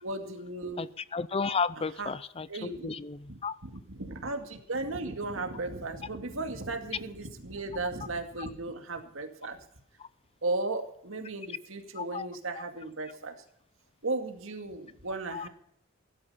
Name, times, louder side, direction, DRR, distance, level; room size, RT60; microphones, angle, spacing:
voice 1, 0.0-0.9 2.0-2.1 2.5-2.9 3.3-9.6 10.4-13.4 14.0-15.5, right 2 dB, 70° right, 5 dB, 2.2 m, -36 dB
voice 2, 1.1-3.6 10.0-10.1 11.9-12.3 15.3-15.5, left 5 dB, 25° left, 17 dB, 0.5 m, -33 dB
17.0 x 12.5 x 5.7 m, 0.70 s
head